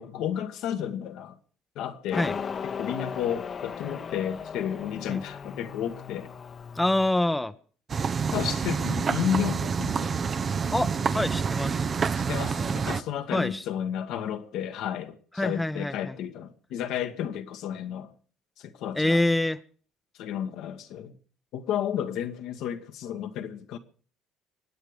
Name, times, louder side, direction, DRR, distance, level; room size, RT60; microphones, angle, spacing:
voice 1, 0.0-1.4 1.7-2.3 2.8-6.3 8.3-10.2 12.2-18.1 18.6-19.2 20.2-21.1 21.5-23.8, left 9 dB, 70° left, 1.5 m, -32 dB
Motorcycle, 2.1-7.1, left 6 dB, 45° left, 1.1 m, -37 dB
voice 2, 6.8-7.5 10.7-11.9 13.3-13.6 15.4-16.2 19.0-19.6, left 1 dB, 10° left, 0.9 m, -26 dB
sound 1, 7.9-13.0, right 5 dB, 40° right, 0.8 m, -27 dB
24.0 x 9.2 x 5.0 m
hypercardioid pair, 65°, 0 cm